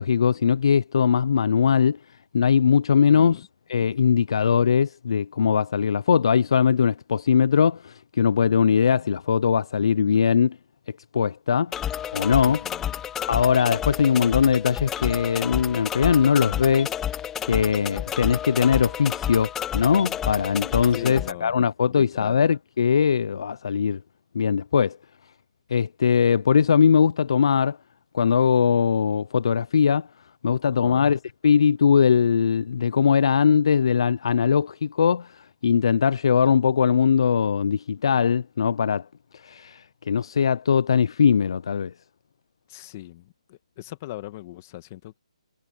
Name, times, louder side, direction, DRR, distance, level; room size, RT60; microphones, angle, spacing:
voice 1, 0.0-2.0 2.3-10.6 11.1-11.7 12.1-12.6 13.3-17.0 17.5-24.0 24.3-25.0 25.7-27.8 28.1-30.1 30.4-39.0 39.3-41.9, left 7 dB, 50° left, 0.3 m, -21 dB
voice 2, 3.1-3.4 12.5-13.0 20.9-21.5 21.9-22.4 30.7-31.1 42.7-45.2, left 16 dB, 25° left, 1.7 m, -40 dB
sound 1, 11.7-21.3, left 10 dB, 10° left, 0.7 m, -30 dB
hypercardioid pair, 170°, 4 cm